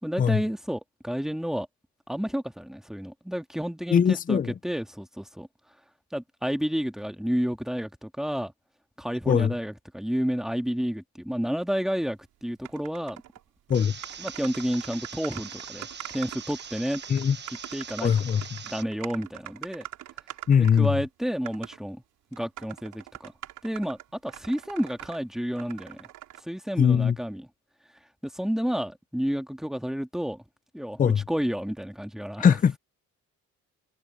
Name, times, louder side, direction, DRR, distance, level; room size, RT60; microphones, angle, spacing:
voice 1, 0.0-1.7 2.1-5.5 6.1-8.5 9.0-13.2 14.2-17.0 17.7-18.1 18.6-19.9 20.6-22.0 22.3-23.3 23.6-26.1 26.4-27.5 28.2-30.4 30.7-32.6, equal, ahead, 2.0 m, -30 dB
voice 2, 3.9-4.5 9.3-9.5 13.7-13.9 17.1-17.4 18.0-18.4 20.5-20.9 26.8-27.2 31.0-31.2 32.4-32.7, left 7 dB, 30° left, 0.5 m, -21 dB
sound 1, 12.6-13.4 13.7-13.8 14.0-21.0 21.5-21.8 22.3-25.2 25.6-26.4, right 14 dB, 90° right, 6.1 m, -43 dB
sound 2, 13.7-18.8, right 6 dB, 35° right, 1.3 m, -42 dB
cardioid pair, 90°, 30 cm